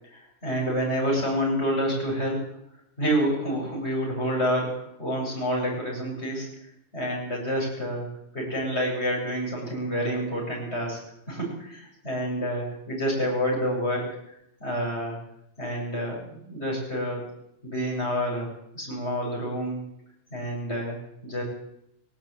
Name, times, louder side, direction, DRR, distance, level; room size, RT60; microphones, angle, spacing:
voice 1, 0.4-2.4 3.0-6.5 6.9-8.1 8.3-11.0 11.3-14.1 14.6-15.2 15.6-17.2 17.6-18.5 18.7-19.8 20.3-21.0 21.2-21.4, equal, 70° left, -2 dB, 8.2 m, -28 dB
17.5 x 17.0 x 9.0 m, 0.79 s
omnidirectional pair, 1.2 m